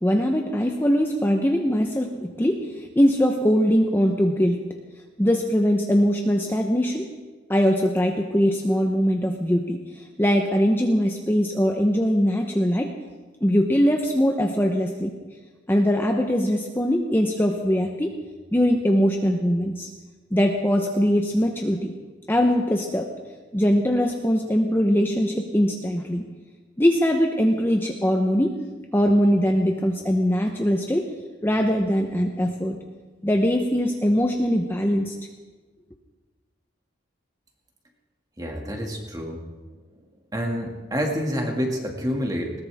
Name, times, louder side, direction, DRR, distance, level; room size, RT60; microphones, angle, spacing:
voice 1, 0.0-4.6 5.2-7.1 7.5-12.9 13.4-15.1 15.7-18.1 18.5-19.9 20.3-21.9 22.3-23.1 23.5-26.3 26.8-28.6 28.9-31.1 31.4-32.8 33.2-35.1, equal, 10° left, 2 dB, 0.9 m, -21 dB
voice 2, 38.4-39.4 40.3-42.5, equal, 20° right, 1 dB, 2.2 m, -28 dB
20.5 x 19.0 x 3.6 m, 1.3 s
head